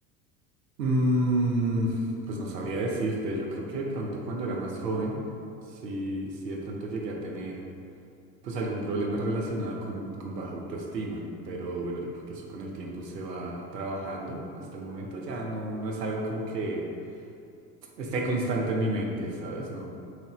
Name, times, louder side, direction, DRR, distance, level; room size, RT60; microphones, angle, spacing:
voice 1, 0.8-2.0 2.3-5.2 5.8-7.6 8.4-16.9 18.0-19.9, right 1 dB, 75° right, -1 dB, 0.8 m, -31 dB
5.9 x 2.6 x 2.9 m, 2.5 s
figure-of-eight pair, 70°, 50 cm